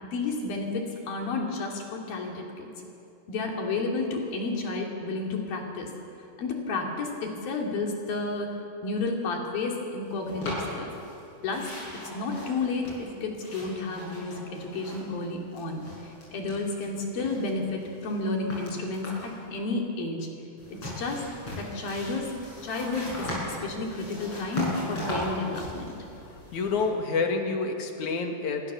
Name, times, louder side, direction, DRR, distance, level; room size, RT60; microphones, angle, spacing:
voice 1, 0.0-2.7 3.3-5.9 6.4-8.5 8.8-10.9 11.4-11.7 12.1-20.3 20.7-21.2 21.6-22.3 22.6-26.0, left 3 dB, 75° left, 0 dB, 4.8 m, -31 dB
sound 1, 10.3-11.2 11.5-15.2 15.5-16.9 17.2-19.4 20.6-26.9, left 1 dB, 35° left, 8.1 m, -38 dB
voice 2, 26.5-28.6, left 4 dB, 60° left, 3 dB, 3.2 m, -28 dB
27.0 x 22.0 x 7.0 m, 2.7 s
omnidirectional pair, 4.2 m